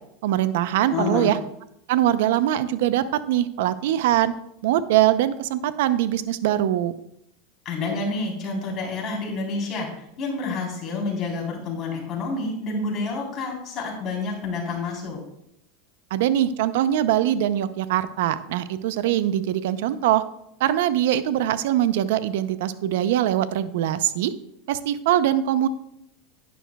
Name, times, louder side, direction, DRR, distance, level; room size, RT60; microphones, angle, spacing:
voice 1, 0.2-1.4 1.9-4.3 4.6-6.9 16.1-20.2 20.6-24.3 24.7-25.7, right 12 dB, 75° right, 13 dB, 0.5 m, -22 dB
voice 2, 0.9-1.3 7.7-15.2, left 3 dB, 35° left, -2 dB, 3.7 m, -28 dB
11.0 x 10.0 x 2.3 m, 0.75 s
supercardioid pair, 140°, 0 cm